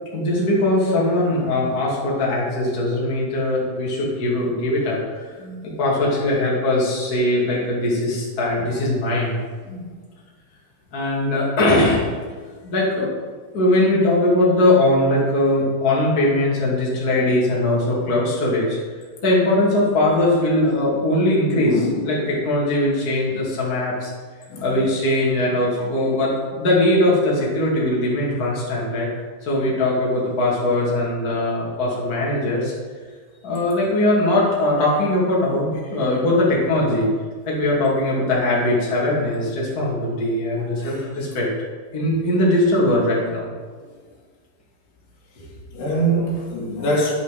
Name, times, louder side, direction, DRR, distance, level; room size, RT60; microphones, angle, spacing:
voice 1, 0.1-9.4 9.7-9.9 10.9-12.0 12.6-13.1 13.5-18.8 19.2-24.1 24.6-29.1 29.4-32.7 33.4-37.1 37.5-41.5 41.9-43.5 45.4-45.5, left 1 dB, 30° left, -5 dB, 2.2 m, -20 dB
voice 2, 21.6-22.3 24.5-24.8 25.8-25.9 40.8-41.0 45.7-47.1, right 1 dB, 80° left, -3 dB, 4.2 m, -24 dB
10.0 x 8.4 x 5.0 m, 1.5 s
omnidirectional pair, 4.6 m